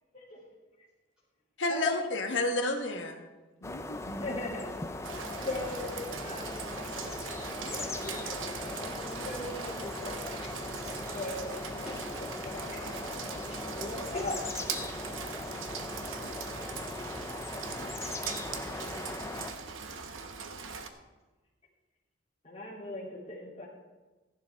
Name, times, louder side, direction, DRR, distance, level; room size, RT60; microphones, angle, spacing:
voice 1, 0.1-0.5 1.7-1.9 4.0-5.1 5.4-6.9 7.6-10.2 11.1-14.8 22.4-23.7, left 2 dB, 30° left, -7 dB, 3.0 m, -39 dB
voice 2, 1.6-3.3 3.6-4.0, left 2 dB, 65° left, 3 dB, 1.4 m, -31 dB
sound 1, 3.6-19.5, left 2 dB, 15° left, 0.5 m, -39 dB
Rain, 5.0-20.9, right 5 dB, 85° right, 0.9 m, -41 dB
voice 3, 11.8-12.5 13.0-13.1 13.5-13.6 18.1-18.3 18.5-20.0, equal, 5° right, -8 dB, 4.0 m, -53 dB
14.5 x 11.0 x 3.6 m, 1.2 s
head